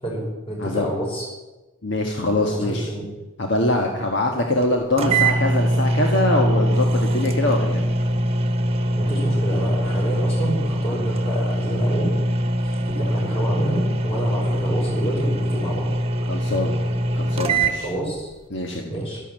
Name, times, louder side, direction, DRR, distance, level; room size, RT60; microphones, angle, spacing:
voice 1, 0.0-1.2 2.5-3.0 9.0-12.1 12.6-15.9 17.8-18.3 18.9-19.2, right 1 dB, 25° left, -3 dB, 5.9 m, -28 dB
voice 2, 1.8-2.9 3.4-7.9 16.3-16.7 17.1-17.9 18.5-18.9, left 1 dB, 60° left, 2 dB, 1.7 m, -23 dB
sound 1, 4.6-4.7 5.0-17.8, right 1 dB, 30° right, 1.3 m, -22 dB
13.0 x 12.0 x 7.7 m, 1.1 s
head